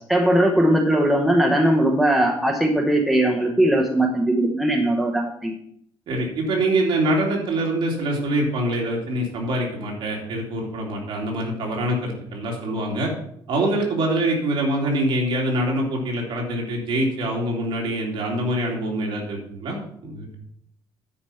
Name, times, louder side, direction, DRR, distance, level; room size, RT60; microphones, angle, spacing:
voice 1, 0.1-5.5, right 1 dB, ahead, 1 dB, 0.9 m, -19 dB
voice 2, 6.1-13.1 13.5-20.3, right 1 dB, 60° right, -1 dB, 2.7 m, -24 dB
9.6 x 5.1 x 5.7 m, 0.69 s
cardioid pair, 165°, 9 cm